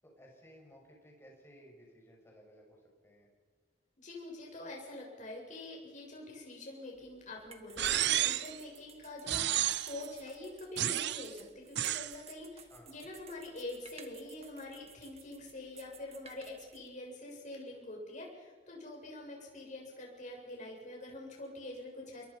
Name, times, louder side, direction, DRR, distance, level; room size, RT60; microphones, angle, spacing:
voice 1, 0.0-3.3 12.7-13.1, equal, 15° left, 0 dB, 6.7 m, -58 dB
voice 2, 4.0-22.3, left 2 dB, 45° left, -1 dB, 7.6 m, -45 dB
sound 1, 6.9-16.9, right 6 dB, 35° right, 1.8 m, -57 dB
sound 2, 7.8-8.6 9.3-10.0 10.8-11.3 11.8-12.1, right 13 dB, 65° right, 0.6 m, -31 dB
29.0 x 22.5 x 5.8 m, 1.5 s
head